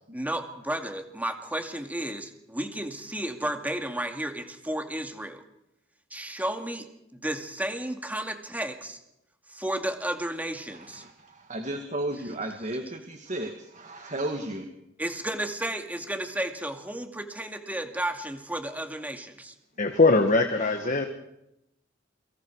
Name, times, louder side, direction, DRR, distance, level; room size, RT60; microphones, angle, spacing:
voice 1, 0.1-5.4 6.1-6.9 7.2-9.0 9.5-11.0 15.0-19.5, right 1 dB, 10° right, 5 dB, 2.3 m, -33 dB
voice 2, 10.7-14.7 20.9-21.0, right 1 dB, 40° right, 4 dB, 2.1 m, -34 dB
voice 3, 19.8-21.0, left 3 dB, 45° left, 5 dB, 1.7 m, -21 dB
29.0 x 24.5 x 4.8 m, 0.84 s
head